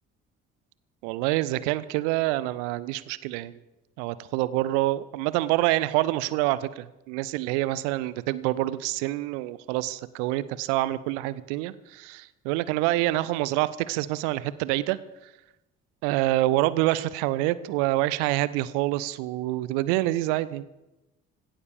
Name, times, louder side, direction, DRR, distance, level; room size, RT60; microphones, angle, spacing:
voice 1, 1.0-3.6 4.0-15.0 16.0-20.6, right 16 dB, 65° right, 18 dB, 0.8 m, -26 dB
16.5 x 12.5 x 6.9 m, 0.97 s
figure-of-eight pair, 45°, 39 cm